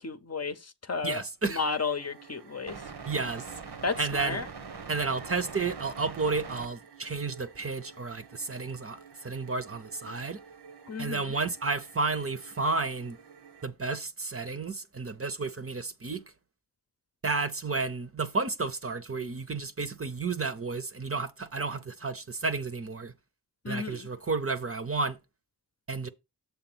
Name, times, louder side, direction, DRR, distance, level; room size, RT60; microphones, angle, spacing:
voice 1, 0.0-2.8 3.8-4.5 10.9-11.3 23.6-24.1, left 4 dB, 40° left, 0.7 m, -33 dB
voice 2, 1.0-1.6 3.1-3.5 4.0-4.4 4.9-10.4 11.0-13.2 13.6-16.2 17.2-23.1 23.7-25.2 25.9-26.1, right 4 dB, 35° right, 0.7 m, -32 dB
sound 1, 1.6-13.7, right 5 dB, 80° right, 1.0 m, -46 dB
7.0 x 3.4 x 6.1 m
cardioid pair, 50°, 40 cm